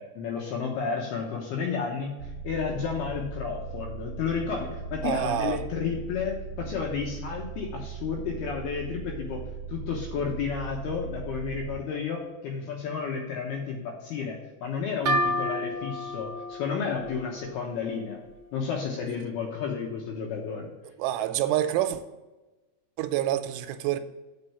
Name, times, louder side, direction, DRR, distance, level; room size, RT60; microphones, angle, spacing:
voice 1, 0.0-9.4 9.7-18.2 18.5-20.7, left 6 dB, 75° left, 2.5 m, -32 dB
sound 1, 2.2-11.8, right 5 dB, 20° left, 2.9 m, -39 dB
voice 2, 5.0-5.6 21.0-22.0 23.0-24.0, right 12 dB, 85° right, 3.1 m, -27 dB
sound 2, 15.0-18.6, equal, 60° right, 1.8 m, -31 dB
7.5 x 5.5 x 6.9 m
omnidirectional pair, 5.6 m